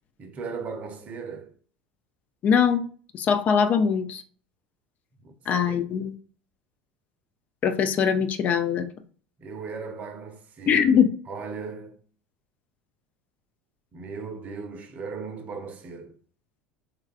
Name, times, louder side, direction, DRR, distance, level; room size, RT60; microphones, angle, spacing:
voice 1, 0.2-1.5 5.2-6.1 9.4-11.0 11.3-12.0 13.9-16.2, right 5 dB, 40° right, 0.6 m, -37 dB
voice 2, 2.4-2.8 3.1-4.2 5.5-6.1 7.6-8.9 10.7-11.1, left 7 dB, 40° left, 0.3 m, -22 dB
3.1 x 2.2 x 2.4 m
hypercardioid pair, 75°, 4 cm